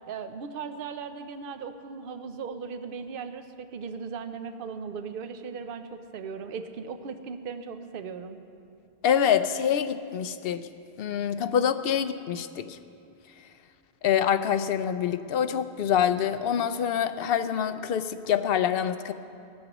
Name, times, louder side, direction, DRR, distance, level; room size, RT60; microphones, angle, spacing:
voice 1, 0.1-8.4, right 5 dB, 60° right, 8 dB, 0.8 m, -37 dB
voice 2, 9.0-10.7 11.0-12.8 14.0-19.1, left 8 dB, 65° left, 11 dB, 0.7 m, -26 dB
17.5 x 13.5 x 3.0 m, 2.7 s
omnidirectional pair, 1.1 m